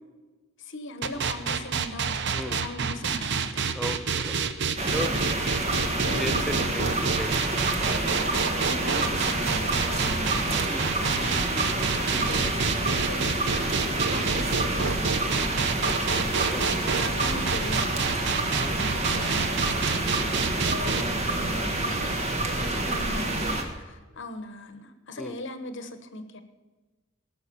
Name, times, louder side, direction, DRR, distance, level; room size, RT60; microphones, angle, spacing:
voice 1, 0.6-2.1 2.4-3.6 4.9-5.2 6.0-6.9 8.1-10.5 11.0-18.2 18.5-26.4, left 1 dB, 55° left, 9 dB, 1.1 m, -40 dB
sound 1, 1.0-21.0, right 5 dB, 55° right, 0.8 m, -28 dB
voice 2, 3.7-4.4 4.9-5.1 6.2-7.6 10.7-10.9 16.5-17.0 18.6-18.8 21.0-21.1 22.5-22.8 25.2-25.4, equal, ahead, 9 dB, 0.5 m, -36 dB
sound 2, 4.8-23.6, right 2 dB, 30° right, 1.4 m, -28 dB
sound 3, 9.1-23.4, right 1 dB, 85° right, 3.4 m, -45 dB
18.5 x 6.3 x 6.9 m, 1.3 s
head